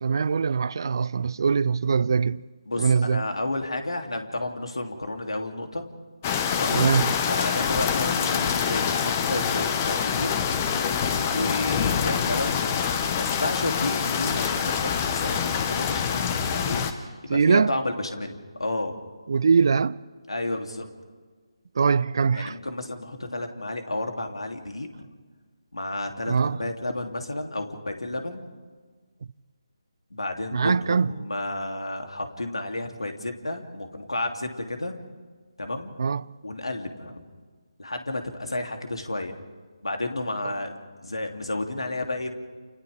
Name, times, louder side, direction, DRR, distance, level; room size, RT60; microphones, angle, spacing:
voice 1, 0.0-2.4 2.8-3.2 6.7-7.2 17.3-17.7 19.3-20.0 21.8-22.6 26.3-26.6 30.5-31.1 36.0-36.3, right 5 dB, 50° right, 0.6 m, -22 dB
voice 2, 2.7-5.9 6.5-6.8 7.3-10.3 11.3-12.7 13.1-16.8 17.3-18.9 20.3-20.9 22.3-24.9 25.7-28.5 30.1-35.0 35.6-35.9 36.4-37.2 37.8-39.4 39.8-42.3, left 2 dB, 80° left, 3.2 m, -31 dB
sound 1, 6.2-16.9, left 7 dB, 25° left, 1.3 m, -25 dB
29.5 x 29.0 x 3.7 m
figure-of-eight pair, 155°, 3 cm